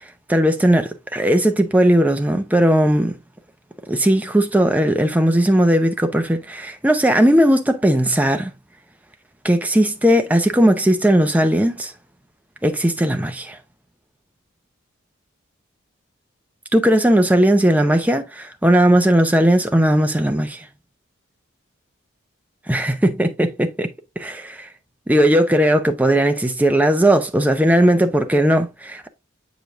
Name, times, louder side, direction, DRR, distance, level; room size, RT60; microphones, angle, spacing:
voice 1, 0.3-3.1 3.9-8.5 9.4-11.9 12.6-13.6 16.7-20.6 22.7-23.9 24.2-24.7 25.1-29.1, right 1 dB, 5° right, 0.6 m, -17 dB
7.6 x 5.1 x 2.5 m
head